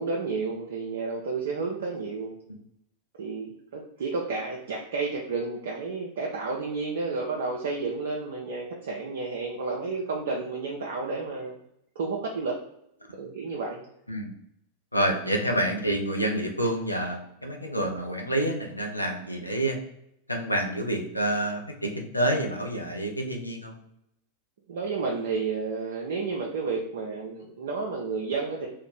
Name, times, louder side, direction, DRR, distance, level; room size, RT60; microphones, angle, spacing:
voice 1, 0.0-2.3 3.2-11.6 12.0-12.6 13.1-13.8 24.7-28.7, right 4 dB, 60° right, -1 dB, 0.4 m, -31 dB
voice 2, 14.9-19.8 20.3-23.8, right 1 dB, 85° left, 2 dB, 0.5 m, -28 dB
2.5 x 2.1 x 3.9 m, 0.78 s
figure-of-eight pair, 90°, 0 cm